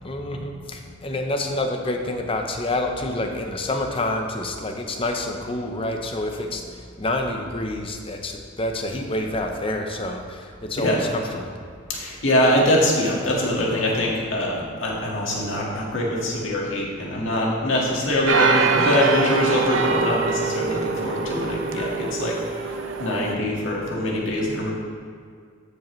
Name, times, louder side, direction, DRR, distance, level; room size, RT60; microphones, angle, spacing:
voice 1, 0.0-11.6, left 1 dB, 30° left, 3 dB, 0.7 m, -28 dB
voice 2, 11.9-24.7, left 1 dB, 85° left, -3 dB, 1.7 m, -23 dB
sound 1, 18.3-23.3, right 4 dB, 80° right, 0.6 m, -23 dB
14.0 x 5.0 x 3.1 m, 2.1 s
head